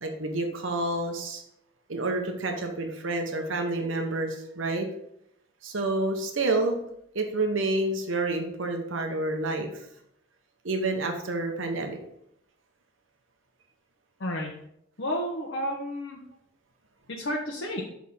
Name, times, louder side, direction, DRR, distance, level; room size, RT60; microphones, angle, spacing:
voice 1, 0.0-1.4 1.9-4.9 5.6-6.8 7.1-9.9 10.6-12.0, right 2 dB, 80° right, 4 dB, 1.0 m, -29 dB
voice 2, 14.2-14.5 15.0-16.2 17.1-17.8, equal, 65° left, -2 dB, 1.0 m, -31 dB
6.3 x 3.6 x 5.5 m, 0.75 s
head